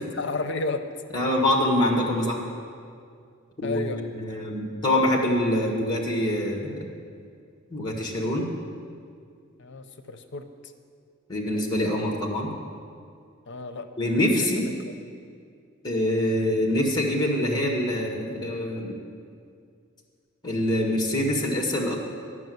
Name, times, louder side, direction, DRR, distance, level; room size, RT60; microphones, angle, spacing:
voice 1, 0.1-0.8 3.6-4.0 9.6-10.5 13.5-13.9, left 3 dB, 65° left, 8 dB, 0.8 m, -31 dB
voice 2, 1.1-2.4 3.6-3.8 4.1-6.9 7.7-8.4 11.3-12.5 14.0-14.7 15.8-19.0 20.4-22.0, left 1 dB, 20° left, 1 dB, 1.6 m, -25 dB
12.0 x 6.1 x 9.2 m, 2.3 s
head